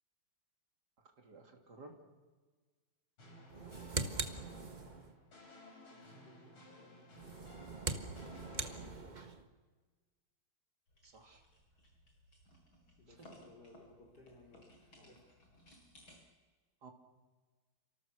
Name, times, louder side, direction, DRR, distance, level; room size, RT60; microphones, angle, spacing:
voice 1, 1.2-2.0 11.0-11.4 16.8-16.9, right 3 dB, 50° right, 3 dB, 3.5 m, -55 dB
sound 1, 3.2-8.9, left 1 dB, 90° left, 5.7 m, -57 dB
sound 2, 3.5-5.1 7.1-9.4, right 3 dB, 25° right, 1.2 m, -41 dB
voice 2, 5.9-9.3 13.0-15.5, left 1 dB, 50° left, -1 dB, 5.1 m, -61 dB
sound 3, 10.9-16.2, left 1 dB, 70° left, 7.6 m, -62 dB
29.5 x 26.0 x 6.7 m, 1.4 s
omnidirectional pair, 2.3 m